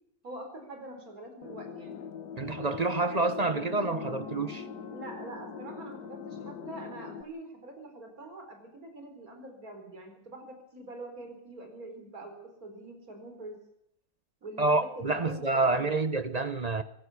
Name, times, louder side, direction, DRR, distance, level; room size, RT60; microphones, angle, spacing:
voice 1, 0.2-2.0 4.9-13.6 14.4-15.9, right 2 dB, 60° right, 4.9 m, -44 dB
sound 1, 1.4-7.2, left 6 dB, 85° left, 1.9 m, -41 dB
voice 2, 2.4-4.6 14.6-16.8, right 3 dB, 30° right, 0.8 m, -28 dB
23.5 x 14.5 x 8.4 m
omnidirectional pair, 1.7 m